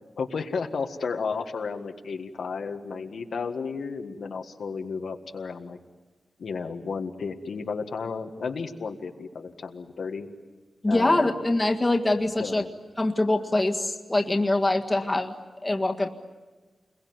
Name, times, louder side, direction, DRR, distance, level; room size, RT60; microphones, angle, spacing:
voice 1, 0.2-5.8 6.4-10.3 10.9-11.4 12.4-12.7, left 5 dB, 90° left, 4 dB, 1.7 m, -33 dB
voice 2, 10.8-12.6 13.0-15.3 15.6-16.1, left 2 dB, 20° left, 3 dB, 1.7 m, -24 dB
28.5 x 22.0 x 9.5 m, 1.3 s
wide cardioid pair, 130°, 0 cm